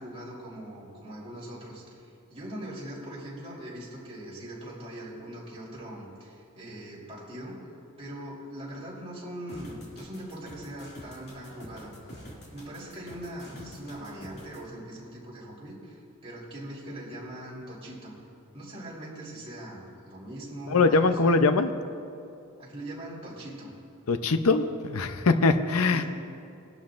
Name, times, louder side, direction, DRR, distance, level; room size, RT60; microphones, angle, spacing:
voice 1, 0.0-7.6 8.0-12.1 12.5-18.1 18.5-21.4 22.6-23.7 25.9-26.1, right 1 dB, 25° right, -6 dB, 3.4 m, -41 dB
sound 1, 9.5-14.6, equal, 50° left, 2.3 m, -47 dB
voice 2, 20.7-21.7 24.1-26.0, left 3 dB, 65° left, 9 dB, 0.6 m, -22 dB
20.0 x 11.5 x 2.5 m, 2.5 s
head